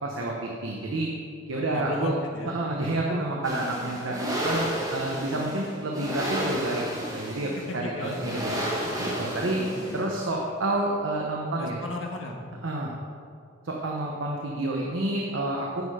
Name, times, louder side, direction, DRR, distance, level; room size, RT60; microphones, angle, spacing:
voice 1, 0.0-1.1 1.5-2.1 2.5-8.5 8.8-9.6 9.9-11.8 12.6-12.9 13.6-15.8, right 2 dB, 70° right, -1 dB, 0.9 m, -29 dB
voice 2, 1.5-2.5 7.6-8.6 9.6-10.0 11.6-12.4, left 1 dB, 70° left, 1 dB, 1.3 m, -35 dB
sound 1, 3.4-10.2, equal, 15° right, 1.6 m, -32 dB
9.6 x 6.6 x 4.9 m, 2.2 s
head